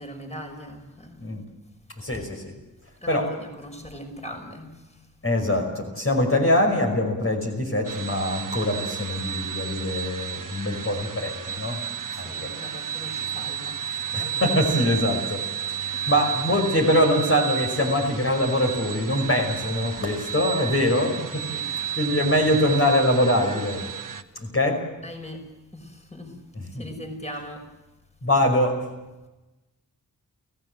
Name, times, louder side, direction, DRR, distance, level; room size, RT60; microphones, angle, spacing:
voice 1, 0.0-1.3 2.1-2.2 3.0-5.0 12.1-14.4 15.9-16.1 20.0-20.1 21.5-21.7 25.0-26.4 26.7-27.7, equal, 20° left, 4 dB, 5.9 m, -40 dB
voice 2, 2.0-2.5 3.1-3.3 5.2-11.8 12.2-12.5 14.1-15.4 15.7-23.9 24.4-24.8 26.6-26.9 28.2-28.8, left 1 dB, 40° left, 1 dB, 5.4 m, -23 dB
sound 1, 7.8-24.2, right 9 dB, 65° right, 1.4 m, -32 dB
29.0 x 17.0 x 7.8 m, 1.1 s
cardioid pair, 55°, 35 cm